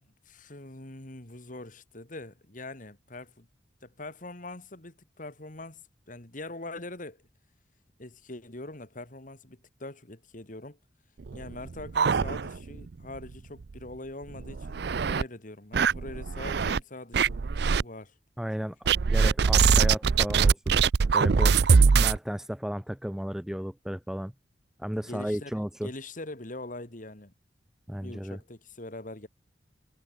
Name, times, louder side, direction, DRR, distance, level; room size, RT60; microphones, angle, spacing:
voice 1, 0.0-3.5 3.8-7.3 8.0-10.8 11.3-17.4 17.8-18.1 21.3-21.6 24.9-25.5 25.8-27.3 28.0-29.3, left 2 dB, 50° left, 2.6 m, -43 dB
sound 1, 11.3-12.8 13.2-13.3 13.6-13.7 14.3-15.2 15.7-16.8 17.1-17.8 18.9-22.2, right 5 dB, 65° right, 0.5 m, -22 dB
voice 2, 18.4-18.8 19.1-20.8 21.1-21.5 21.9-24.3 24.8-25.9 27.9-28.4, equal, 5° right, 0.4 m, -34 dB
head